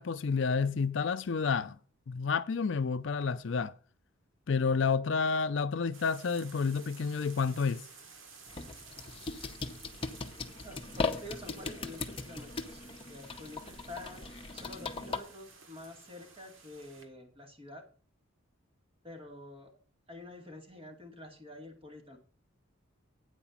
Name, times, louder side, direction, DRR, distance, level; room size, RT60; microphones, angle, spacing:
voice 1, 0.0-1.8 2.1-3.7 4.5-7.8, left 5 dB, 65° left, 0.5 m, -30 dB
sound 1, 5.9-17.0, right 5 dB, 75° right, 1.7 m, -54 dB
sound 2, 8.5-15.2, left 3 dB, 25° left, 0.8 m, -38 dB
voice 2, 10.6-14.2 14.5-17.8 19.0-19.7 20.1-22.2, left 1 dB, 25° right, 2.3 m, -48 dB
9.0 x 4.9 x 7.1 m
head